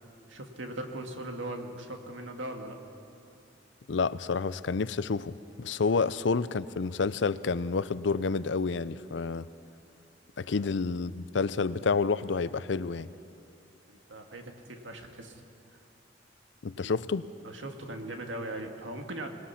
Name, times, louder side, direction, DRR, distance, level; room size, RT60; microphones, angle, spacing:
voice 1, 0.3-2.8 10.4-10.6 13.9-15.4 15.7-15.8 16.8-16.9 17.4-19.3, right 1 dB, 90° right, 4 dB, 2.0 m, -39 dB
voice 2, 3.9-9.5 10.4-13.1 16.6-17.2, left 4 dB, 75° left, 16 dB, 0.5 m, -29 dB
24.0 x 20.0 x 5.8 m, 2.6 s
head